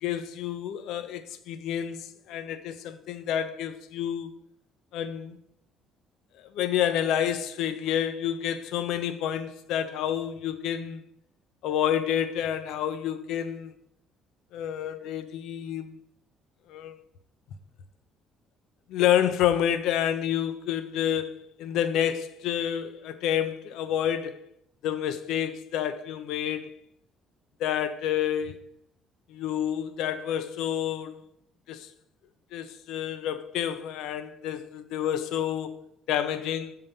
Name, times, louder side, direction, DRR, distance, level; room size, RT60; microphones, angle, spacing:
voice 1, 0.0-4.4 4.9-5.4 6.5-11.0 11.6-13.7 14.5-16.0 16.7-17.0 18.9-24.5 24.8-26.7 27.6-28.6 29.3-31.2 31.7-31.9 32.5-36.8, left 10 dB, 80° left, 0.5 m, -29 dB
6.8 x 3.7 x 5.3 m
supercardioid pair, 80°, 0 cm